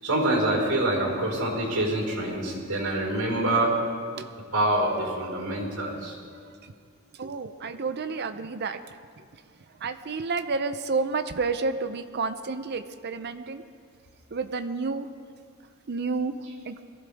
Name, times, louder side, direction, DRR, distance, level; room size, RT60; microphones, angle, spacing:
voice 1, 0.0-3.7 4.5-6.1, right 1 dB, 80° right, -1 dB, 4.8 m, -26 dB
voice 2, 7.2-8.8 9.8-13.6 14.3-15.1 15.9-16.3 16.7-16.8, right 4 dB, 50° right, 10 dB, 0.6 m, -30 dB
22.0 x 15.0 x 3.6 m, 2.3 s
head